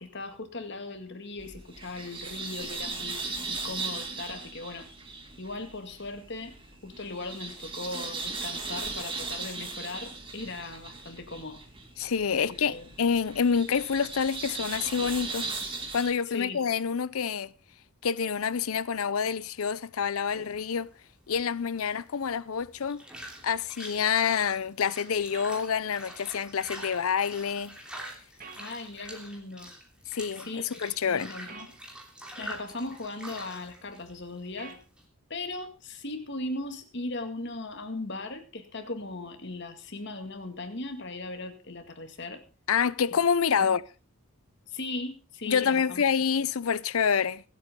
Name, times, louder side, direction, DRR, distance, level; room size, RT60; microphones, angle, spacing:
voice 1, 0.0-4.9 5.4-6.6 6.8-11.6 12.3-12.9 16.3-16.6 28.6-29.7 30.4-30.7 31.1-31.7 32.4-34.8 35.3-42.4 43.1-43.2 43.6-43.7 44.7-46.0, left 2 dB, 50° left, 2.1 m, -38 dB
sound 1, 1.4-16.1, right 4 dB, 25° right, 2.4 m, -38 dB
voice 2, 12.0-15.5 15.9-17.5 18.0-20.9 21.3-23.0 23.4-27.8 30.1-31.3 42.7-43.8 45.5-47.4, left 6 dB, 75° left, 0.6 m, -27 dB
sound 2, 20.3-35.0, right 1 dB, 5° right, 3.1 m, -45 dB
sound 3, 25.3-25.5 28.4-28.6 31.5-31.7 34.6-34.8, right 5 dB, 40° right, 1.9 m, -45 dB
25.0 x 8.5 x 3.7 m
head